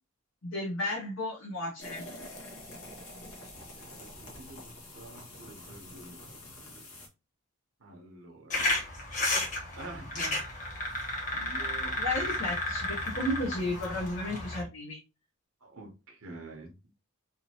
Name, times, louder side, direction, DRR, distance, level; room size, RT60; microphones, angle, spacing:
voice 1, 0.4-2.1 12.0-15.0, left 1 dB, 65° left, 1.0 m, -33 dB
sound 1, 1.8-7.1, left 1 dB, 80° left, 1.4 m, -46 dB
voice 2, 3.5-6.9 7.8-8.7 9.7-10.8 11.3-12.0 15.6-16.7, right 2 dB, 75° right, 1.0 m, -48 dB
sound 2, 8.5-14.6, left 2 dB, 35° left, 1.4 m, -32 dB
3.6 x 2.7 x 2.9 m
head